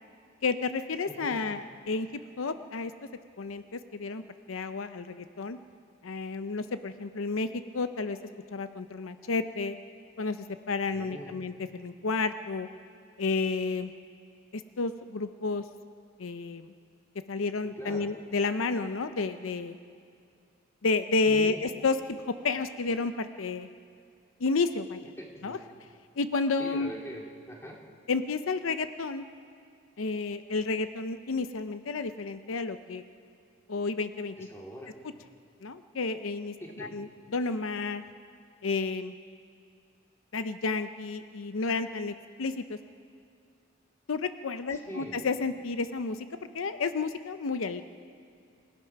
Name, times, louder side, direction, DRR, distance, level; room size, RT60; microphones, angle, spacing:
voice 1, 0.4-2.1 2.4-2.9 3.4-4.2 4.5-5.6 6.0-8.2 8.5-9.8 10.2-12.7 13.2-13.9 14.5-15.6 16.2-16.7 17.3-19.8 20.8-22.0 22.3-23.7 24.4-25.0 25.4-25.6 26.2-26.9 28.1-29.3 30.0-33.0 33.7-34.3 35.6-36.5 36.8-38.0 38.6-39.1 40.3-42.8 44.1-46.3 46.5-47.8, left 4 dB, 85° left, 10 dB, 0.7 m, -31 dB
voice 2, 1.1-1.4 10.9-11.3 17.8-18.1 21.2-21.6 25.2-25.6 26.6-27.8 34.4-34.9 36.6-36.9 44.7-45.1, equal, 15° left, -2 dB, 2.5 m, -42 dB
27.5 x 16.0 x 5.9 m, 2.4 s
head